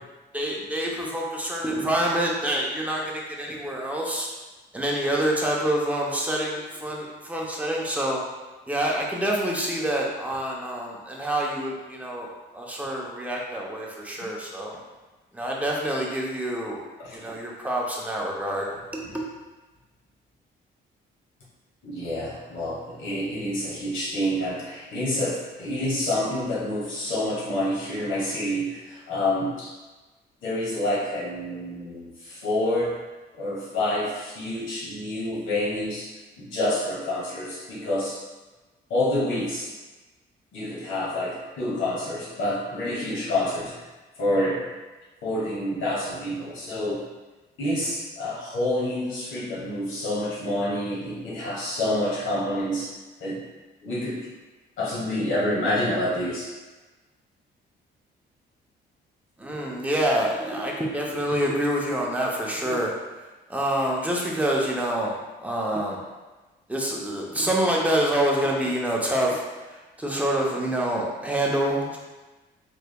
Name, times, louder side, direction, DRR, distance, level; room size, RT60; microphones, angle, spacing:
voice 1, 0.3-4.3 4.7-8.2 8.7-14.7 15.3-16.8 17.1-19.2 59.4-62.9 63.5-65.2 65.4-66.0 66.7-72.0, right 1 dB, 5° right, -2 dB, 0.7 m, -27 dB
voice 2, 21.8-29.7 30.4-33.0 33.4-36.1 36.4-38.2 38.9-39.7 40.5-43.8 44.2-44.6 45.2-47.0 47.6-52.9 53.2-53.4 53.8-54.2 54.8-56.5, left 1 dB, 80° left, -6 dB, 1.2 m, -28 dB
3.4 x 3.2 x 2.2 m, 1.2 s
cardioid pair, 90°, 20 cm